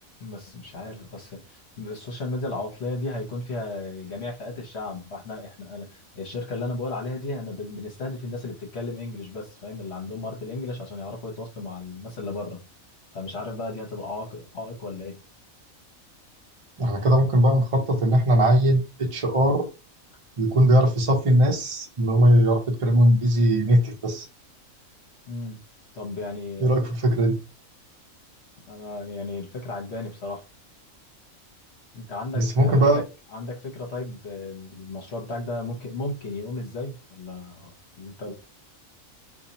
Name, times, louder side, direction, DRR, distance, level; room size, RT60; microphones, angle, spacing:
voice 1, 0.2-12.6 13.1-15.2 25.3-25.6 25.9-26.7 28.7-30.4 31.9-33.0 33.3-38.3, left 2 dB, 55° left, 1.1 m, -34 dB
voice 2, 16.8-19.7 20.4-24.3 26.6-27.3 32.3-33.0, right 1 dB, 35° right, 0.6 m, -20 dB
2.7 x 2.5 x 4.0 m
omnidirectional pair, 1.4 m